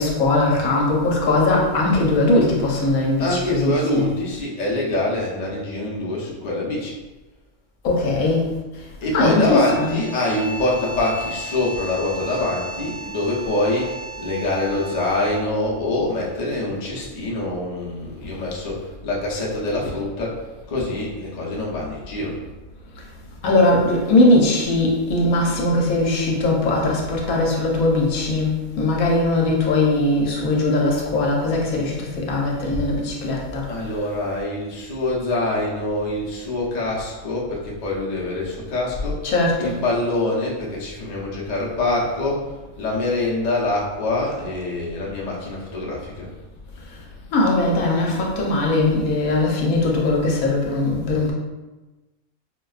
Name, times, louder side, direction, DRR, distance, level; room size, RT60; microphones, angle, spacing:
voice 1, 0.0-4.1 7.8-8.5 9.1-10.0 23.4-33.7 39.2-39.8 47.3-51.3, left 2 dB, 75° left, -2 dB, 1.1 m, -20 dB
voice 2, 3.2-6.9 9.0-20.4 20.7-22.4 33.7-46.3, left 2 dB, 45° left, -4 dB, 0.5 m, -25 dB
sound 1, 9.4-15.6, right 1 dB, 80° right, 1.4 m, -35 dB
4.5 x 2.2 x 2.3 m, 1.2 s
omnidirectional pair, 1.5 m